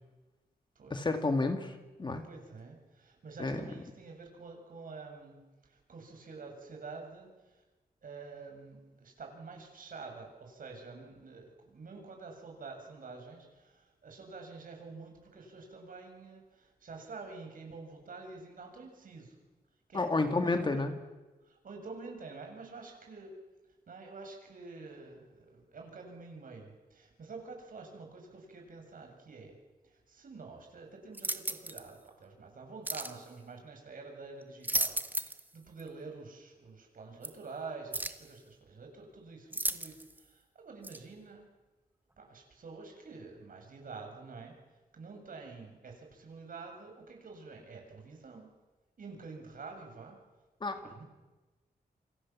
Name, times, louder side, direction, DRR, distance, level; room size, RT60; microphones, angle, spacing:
voice 1, 0.9-2.3 3.4-3.6 19.9-20.9 50.6-51.0, left 3 dB, 30° left, 7 dB, 2.1 m, -31 dB
voice 2, 2.2-7.6 8.0-19.3 19.9-20.8 21.5-23.3 23.9-29.6 29.8-41.4 42.2-44.6 44.9-48.5 49.0-50.2 50.8-51.1, right 4 dB, 60° right, 3 dB, 7.3 m, -48 dB
sound 1, 31.1-31.9 32.9-33.2 34.4-35.5 35.8-35.9 37.2-37.3 37.9-38.3 39.5-40.2 40.8-41.0, right 1 dB, 10° right, 1.4 m, -34 dB
28.5 x 25.0 x 7.4 m, 1.2 s
wide cardioid pair, 135°, 16 cm